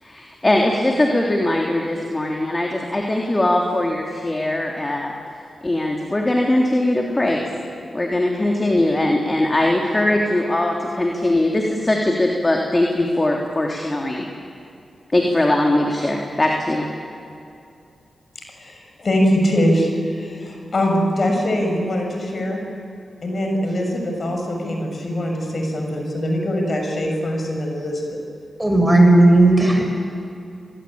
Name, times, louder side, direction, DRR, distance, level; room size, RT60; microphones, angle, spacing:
voice 1, 0.0-5.1 5.6-7.5 7.9-14.2 15.1-16.9, left 1 dB, 30° left, 0 dB, 3.4 m, -20 dB
voice 2, 18.6-22.6 23.2-28.2, equal, 55° left, 2 dB, 6.3 m, -22 dB
voice 3, 28.6-29.9, right 2 dB, 15° right, 3 dB, 6.7 m, -13 dB
25.5 x 20.0 x 8.9 m, 2.6 s
cardioid pair, 45°, 0 cm